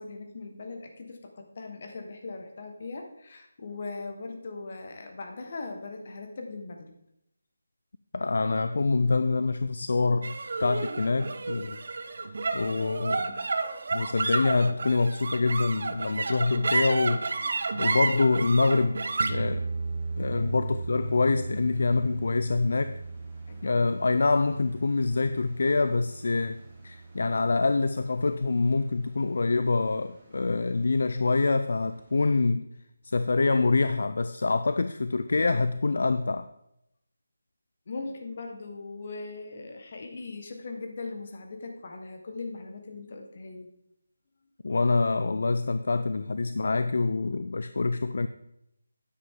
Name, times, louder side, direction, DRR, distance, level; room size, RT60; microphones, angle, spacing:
voice 1, 0.0-6.9 17.9-18.0 20.4-20.6 23.5-23.8 37.9-43.7, left 3 dB, 45° left, 4 dB, 1.5 m, -40 dB
voice 2, 8.1-10.3 10.6-11.8 12.5-13.3 13.9-17.2 17.8-19.0 19.3-19.7 20.2-23.0 23.6-32.7 33.0-36.5 44.6-48.3, left 3 dB, 60° left, 11 dB, 0.4 m, -25 dB
sound 1, 10.2-26.8, right 3 dB, 55° right, 0.8 m, -32 dB
sound 2, 14.8-32.4, right 1 dB, 15° right, 3.1 m, -58 dB
9.7 x 7.7 x 3.8 m, 0.81 s
figure-of-eight pair, 165°, 0 cm